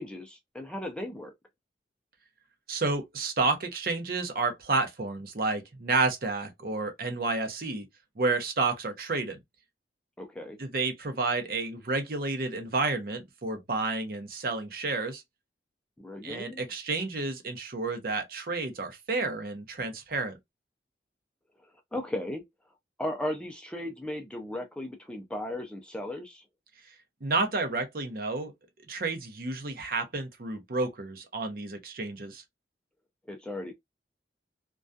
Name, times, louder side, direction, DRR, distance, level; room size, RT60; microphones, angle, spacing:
voice 1, 0.0-1.3 10.2-10.6 16.0-16.6 21.9-22.4 23.0-26.4 33.3-33.7, left 1 dB, 5° left, 0.3 m, -36 dB
voice 2, 2.7-7.9 8.2-9.4 10.6-15.2 16.2-20.4 27.2-28.5 28.9-32.4, right 3 dB, 55° right, 0.6 m, -30 dB
2.3 x 2.3 x 2.5 m
head